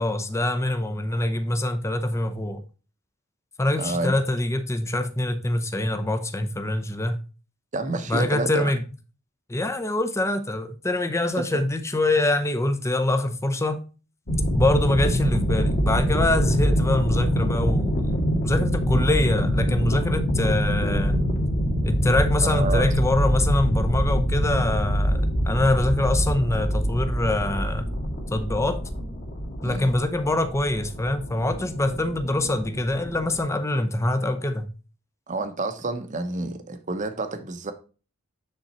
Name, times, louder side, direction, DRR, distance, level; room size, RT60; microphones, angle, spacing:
voice 1, 0.0-2.6 3.6-7.2 8.1-8.8 9.5-13.8 14.5-18.1 18.4-21.2 21.8-27.9 28.3-28.8 29.6-34.7, left 1 dB, 15° left, 0.7 m, -24 dB
voice 2, 3.8-4.1 7.7-8.7 11.4-11.5 22.4-22.9 29.6-29.9 35.3-37.7, right 2 dB, 35° right, 0.9 m, -29 dB
sound 1, 14.3-33.4, equal, 45° left, 2.1 m, -25 dB
9.1 x 3.9 x 4.2 m
head